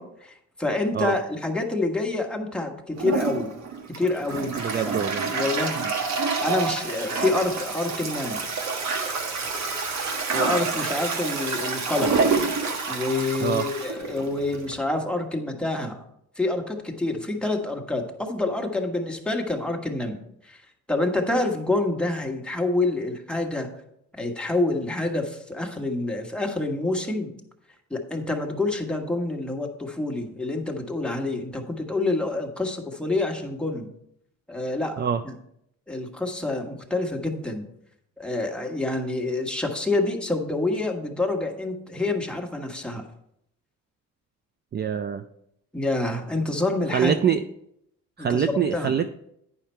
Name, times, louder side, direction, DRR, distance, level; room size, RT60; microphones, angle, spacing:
voice 1, 0.0-3.6 4.0-4.5 4.8-5.0 5.3-5.9 6.4-8.4 10.3-12.2 12.9-16.0 16.4-20.6 20.9-23.7 24.1-27.3 27.9-33.9 34.5-35.3 35.9-37.7 38.2-43.0 45.7-47.2 48.2-48.9, left 2 dB, 5° left, 1 dB, 1.4 m, -27 dB
Toilet flush, 3.0-14.8, right 4 dB, 65° right, 1.4 m, -28 dB
voice 2, 4.6-5.3 13.4-13.7 35.0-35.2 44.7-45.2 46.9-47.4 48.2-49.1, right 8 dB, 35° right, 9 dB, 0.4 m, -24 dB
9.2 x 5.8 x 4.4 m, 0.75 s
cardioid pair, 90°, 30 cm